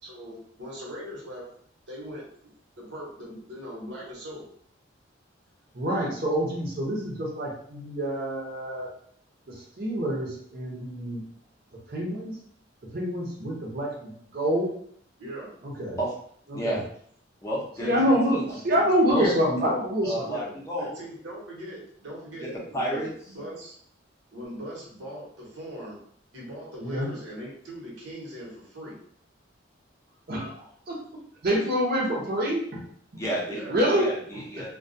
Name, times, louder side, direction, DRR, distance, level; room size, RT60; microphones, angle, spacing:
voice 1, 0.0-1.5 1.9-2.3 2.8-4.5 15.2-15.5 17.8-18.0 20.2-23.7 24.3-26.0 26.3-29.0 33.5-33.8, equal, 75° right, -4 dB, 1.0 m, -40 dB
voice 2, 5.7-8.9 9.8-11.2 11.9-12.4 12.9-14.7 15.6-16.0 16.5-16.8 17.8-20.3 26.8-27.1 30.3-30.6 30.9-32.8 33.7-34.1 34.6-34.7, equal, 50° right, -2 dB, 0.7 m, -26 dB
voice 3, 17.4-18.5 18.8-19.3 19.6-19.7 20.0-20.9 22.4-22.5 22.7-23.1 33.2-33.6 33.9-34.7, right 1 dB, 15° left, -5 dB, 0.6 m, -31 dB
2.2 x 2.2 x 2.6 m, 0.62 s
head